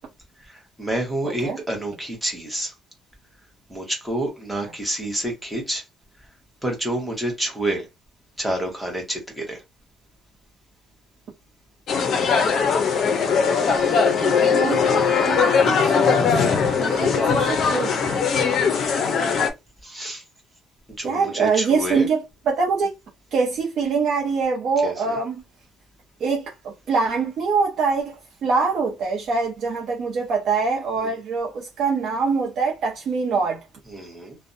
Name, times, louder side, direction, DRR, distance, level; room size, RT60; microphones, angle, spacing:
voice 1, 0.4-2.7 3.7-5.8 6.6-7.9 8.4-9.6 13.7-14.4 16.5-16.9 18.9-19.0 19.8-20.2 21.0-22.1 24.8-25.2 31.0-31.2 33.9-34.4, right 1 dB, ahead, 0.9 m, -29 dB
sound 1, 11.9-19.5, left 5 dB, 45° left, 0.5 m, -20 dB
voice 2, 14.2-16.3 16.8-18.0 21.0-22.9 23.3-25.4 26.2-26.5 26.9-28.1 28.4-33.6, right 4 dB, 50° right, 0.6 m, -24 dB
2.5 x 2.1 x 2.5 m
cardioid pair, 150°, 0 cm